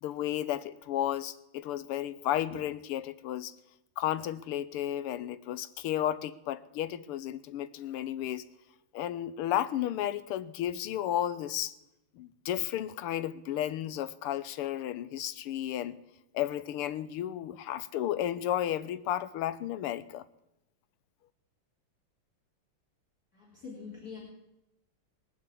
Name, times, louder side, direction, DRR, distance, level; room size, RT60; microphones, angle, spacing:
voice 1, 0.0-3.5 4.0-8.4 8.9-11.7 12.2-16.0 16.3-20.2, left 12 dB, 85° left, 1.7 m, -33 dB
voice 2, 23.3-24.2, left 5 dB, 40° left, 3.6 m, -44 dB
20.5 x 7.2 x 8.4 m
omnidirectional pair, 2.4 m